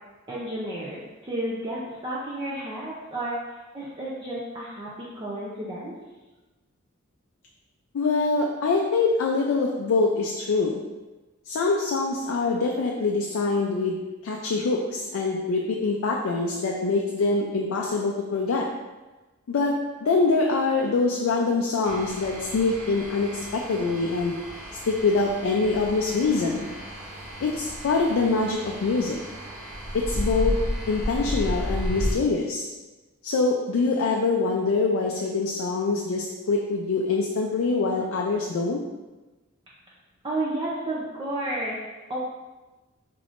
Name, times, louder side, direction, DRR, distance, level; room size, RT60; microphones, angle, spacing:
voice 1, 0.3-5.9 40.2-41.8 42.1-42.2, right 1 dB, 25° right, -6 dB, 0.4 m, -32 dB
voice 2, 7.9-10.8 11.5-18.6 19.5-24.3 24.9-26.7 27.4-29.2 29.9-30.6 30.9-32.7 33.2-38.8, left 3 dB, 75° left, 0 dB, 0.4 m, -24 dB
sound 1, 21.8-32.1, equal, 80° right, 1.0 m, -33 dB
3.7 x 3.5 x 2.5 m, 1.2 s
head